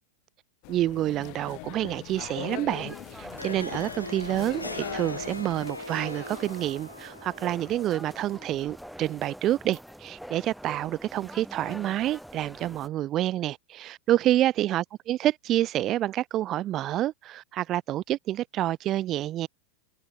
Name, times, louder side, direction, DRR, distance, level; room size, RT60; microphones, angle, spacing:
sound 1, 0.6-5.8, left 36 dB, 45° left, 2.1 m, -41 dB
voice 1, 0.7-19.5, right 13 dB, 35° right, 0.6 m, -28 dB
sound 2, 2.9-12.9, equal, ahead, 2.9 m, -45 dB
Harp, 3.2-8.6, left 2 dB, 85° left, 1.1 m, -40 dB
figure-of-eight pair, 90°, 0 cm